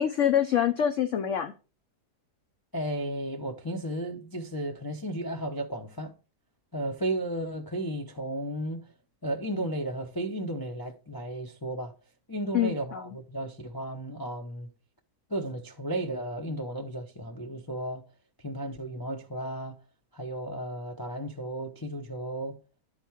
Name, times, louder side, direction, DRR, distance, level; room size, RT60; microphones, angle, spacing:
voice 1, 0.0-1.5 12.5-13.2, left 9 dB, 60° left, 0.9 m, -26 dB
voice 2, 2.7-6.1 6.7-8.9 9.2-11.9 12.3-14.7 15.3-18.0 18.4-19.8 20.1-22.5, right 1 dB, 35° left, 0.3 m, -34 dB
10.5 x 4.6 x 4.5 m
omnidirectional pair, 1.7 m